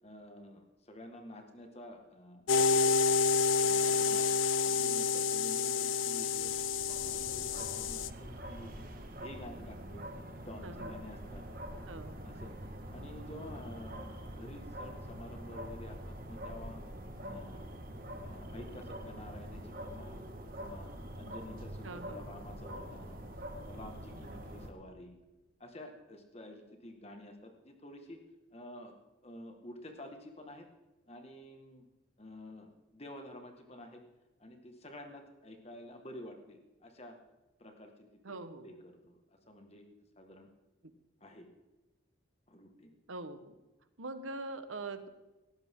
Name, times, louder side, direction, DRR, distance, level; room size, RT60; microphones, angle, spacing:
voice 1, 0.0-3.2 3.7-4.3 4.6-6.5 7.0-8.9 9.2-10.1 10.4-11.4 12.2-12.6 12.9-16.8 17.2-17.7 18.2-20.2 20.6-23.2 23.7-25.2 25.6-28.2 28.5-28.9 29.2-30.7 31.1-31.8 32.2-34.0 34.4-37.2 37.6-37.9 38.3-39.2 39.5-39.8 40.2-40.5 41.2-41.5 42.5-42.9, left 1 dB, 30° left, 4 dB, 1.8 m, -50 dB
sound 1, 2.5-8.1, left 5 dB, 80° left, 0.5 m, -29 dB
sound 2, 6.2-24.7, equal, 45° right, 1.6 m, -45 dB
voice 2, 10.6-11.0 11.9-12.1 21.8-22.3 38.2-38.8 43.1-43.5 44.0-45.1, right 2 dB, 85° right, 10 dB, 1.3 m, -43 dB
17.5 x 14.5 x 3.8 m, 1.1 s
head